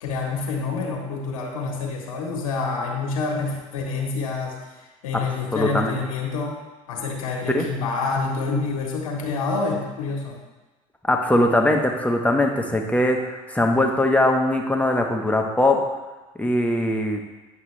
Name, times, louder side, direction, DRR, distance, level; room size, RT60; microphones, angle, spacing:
voice 1, 0.0-4.5 5.0-6.6 6.9-10.4, left 4 dB, 90° left, 0 dB, 1.5 m, -27 dB
voice 2, 5.5-6.0 7.5-7.7 11.1-15.8 16.4-17.2, left 1 dB, 10° left, 2 dB, 1.2 m, -21 dB
9.3 x 5.9 x 3.3 m, 1.2 s
hypercardioid pair, 80°, 18 cm